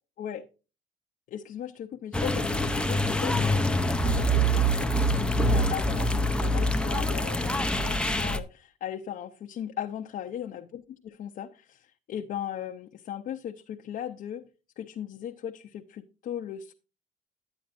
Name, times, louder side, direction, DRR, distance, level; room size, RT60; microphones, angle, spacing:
voice 1, 1.3-14.5 14.8-16.7, left 10 dB, 55° left, 4 dB, 0.7 m, -37 dB
sound 1, 2.1-8.4, equal, 5° left, 0.6 m, -25 dB
10.5 x 9.0 x 2.5 m, 0.32 s
cardioid pair, 110°, 17 cm